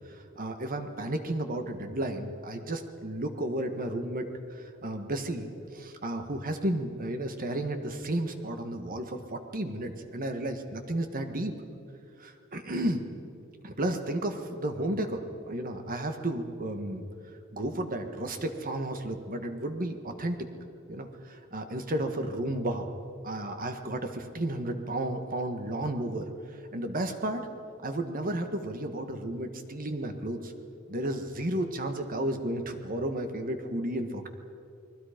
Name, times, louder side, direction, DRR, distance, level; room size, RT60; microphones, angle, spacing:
voice 1, 0.1-11.5 12.2-13.0 13.6-17.0 17.5-20.4 20.9-22.9 23.2-27.5 27.8-30.5 30.9-34.3, right 1 dB, 45° right, 6 dB, 1.5 m, -33 dB
29.0 x 20.5 x 5.2 m, 2.6 s
head